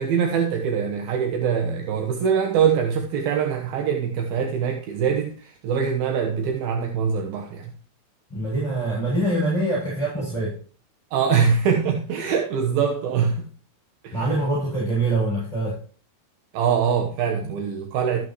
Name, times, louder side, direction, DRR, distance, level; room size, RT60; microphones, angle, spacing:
voice 1, 0.0-7.7 11.1-13.5 14.0-14.3 16.5-18.3, right 7 dB, 70° right, 2.4 m, -23 dB
voice 2, 8.3-10.6 14.1-15.8, right 2 dB, 5° left, 6.5 m, -24 dB
14.0 x 9.1 x 3.1 m
omnidirectional pair, 5.6 m